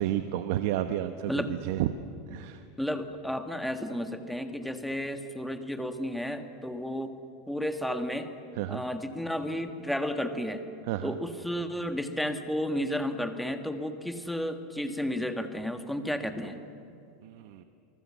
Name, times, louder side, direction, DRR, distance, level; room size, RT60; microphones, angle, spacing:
voice 1, 0.0-1.9 2.3-2.6 8.6-8.8 10.9-11.2 17.2-17.6, right 12 dB, 65° right, 9 dB, 1.0 m, -31 dB
voice 2, 2.8-7.1 7.5-8.3 8.7-10.6 11.0-16.6, equal, ahead, 6 dB, 1.6 m, -32 dB
27.5 x 20.0 x 7.5 m, 2.7 s
supercardioid pair, 135°, 0 cm